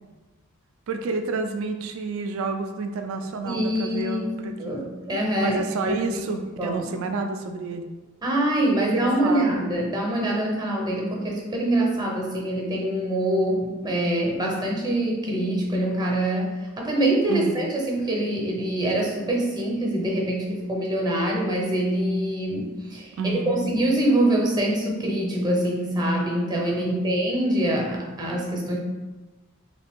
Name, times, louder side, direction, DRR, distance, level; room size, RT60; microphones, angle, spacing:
voice 1, 0.9-4.8 5.4-7.9 8.8-9.6 17.3-17.5 23.2-23.7 26.7-27.0, right 3 dB, 70° right, 6 dB, 0.3 m, -29 dB
voice 2, 3.4-4.3 4.6-5.6 5.9-6.0 6.6-7.1 8.2-16.5 16.8-28.8, right 1 dB, 20° right, -2 dB, 0.6 m, -24 dB
3.2 x 2.4 x 3.5 m, 1.2 s
head